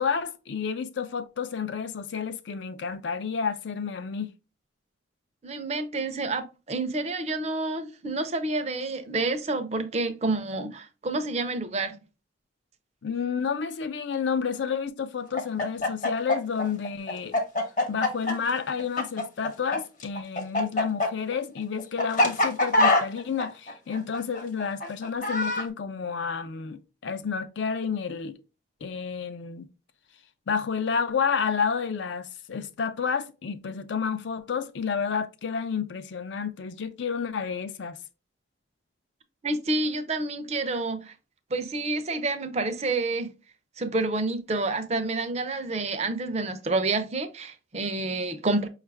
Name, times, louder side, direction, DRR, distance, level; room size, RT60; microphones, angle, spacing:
voice 1, 0.0-4.3 13.0-17.4 17.9-28.4 28.8-29.7 30.5-38.0, left 6 dB, 65° left, 0.4 m, -30 dB
voice 2, 5.4-12.0 39.4-41.1 41.5-43.3 43.8-48.7, right 2 dB, 35° right, 0.5 m, -29 dB
Chicken rooster, 15.3-19.8 20.0-25.7, left 2 dB, 40° left, 0.8 m, -24 dB
5.4 x 2.4 x 3.2 m
head